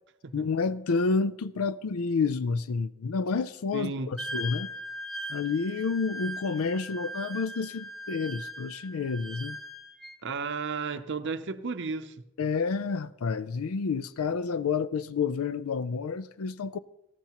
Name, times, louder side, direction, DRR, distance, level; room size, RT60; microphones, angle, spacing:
voice 1, 0.3-4.7 5.3-9.6 12.4-16.8, left 5 dB, 75° left, 0.4 m, -29 dB
voice 2, 3.7-4.2 10.2-12.2, right 4 dB, 55° right, 0.7 m, -33 dB
Wind instrument woodwind instrument, 4.2-10.2, equal, ahead, 0.9 m, -39 dB
18.5 x 13.5 x 3.0 m
head